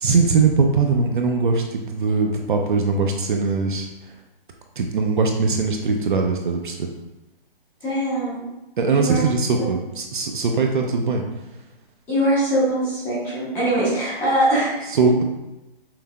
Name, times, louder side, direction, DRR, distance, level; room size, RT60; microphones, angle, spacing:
voice 1, 0.0-3.9 4.8-6.9 8.8-11.2 14.9-15.2, right 4 dB, 55° right, 3 dB, 0.5 m, -21 dB
voice 2, 7.8-8.5 8.9-9.2 12.1-14.9, right 1 dB, 5° left, -11 dB, 0.7 m, -22 dB
5.6 x 2.6 x 2.3 m, 0.98 s
hypercardioid pair, 165°, 30 cm